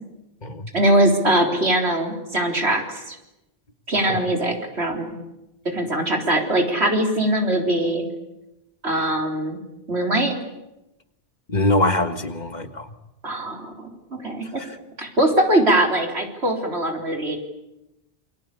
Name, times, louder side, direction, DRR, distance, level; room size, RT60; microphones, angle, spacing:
voice 1, 0.7-3.2 3.9-5.2 5.6-8.0 8.8-9.6 9.9-10.3 13.2-14.5 15.0-17.4, right 1 dB, 85° right, 3 dB, 4.2 m, -21 dB
voice 2, 11.5-12.9 14.6-14.8, left 1 dB, 45° left, 9 dB, 1.8 m, -23 dB
28.0 x 24.0 x 8.4 m, 0.92 s
omnidirectional pair, 1.1 m